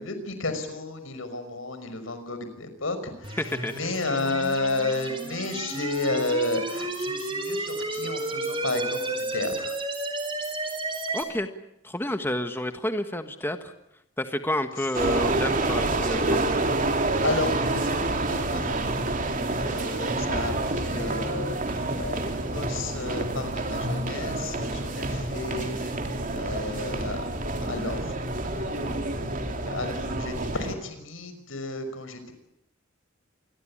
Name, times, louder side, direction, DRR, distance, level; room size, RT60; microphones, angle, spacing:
voice 1, 0.0-3.4 3.7-9.8 16.8-17.0 17.2-18.8 19.3-26.0 26.3-27.2 27.6-28.2 28.4-32.3, left 2 dB, 85° left, 9 dB, 5.6 m, -32 dB
sound 1, 3.2-11.2, right 2 dB, 25° right, 4.4 m, -32 dB
voice 2, 3.4-3.8 11.1-11.5 11.8-13.7 14.2-16.4 19.5-19.6, left 1 dB, 10° left, 7 dB, 1.4 m, -30 dB
sound 2, 14.9-30.7, right 2 dB, 40° right, 3.0 m, -28 dB
28.0 x 21.5 x 8.7 m, 0.80 s
head